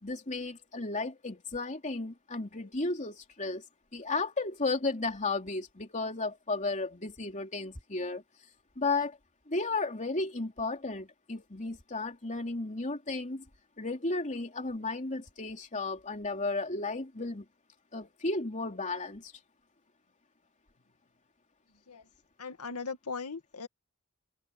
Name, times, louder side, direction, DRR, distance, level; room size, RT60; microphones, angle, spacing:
voice 1, 0.0-3.6 3.9-8.2 8.8-9.2 9.5-13.4 13.8-17.4 17.9-19.3, left 3 dB, 35° left, 3.2 m, -34 dB
voice 2, 22.4-23.7, left 4 dB, 90° left, 2.1 m, -39 dB
head